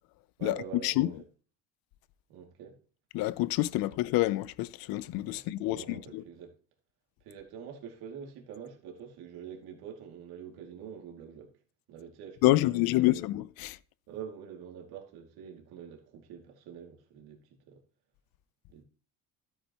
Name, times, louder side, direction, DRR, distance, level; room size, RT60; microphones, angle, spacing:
voice 1, 0.4-1.2 2.3-2.8 3.8-3.9 5.3-6.5 7.2-11.5 11.9-13.2 14.1-17.4 17.7-17.8 18.7-18.8, right 8 dB, 80° right, 2.4 m, -45 dB
voice 2, 3.1-6.2 12.4-13.8, left 17 dB, 70° left, 0.6 m, -27 dB
13.0 x 8.7 x 2.9 m
cardioid pair, 130°, 37 cm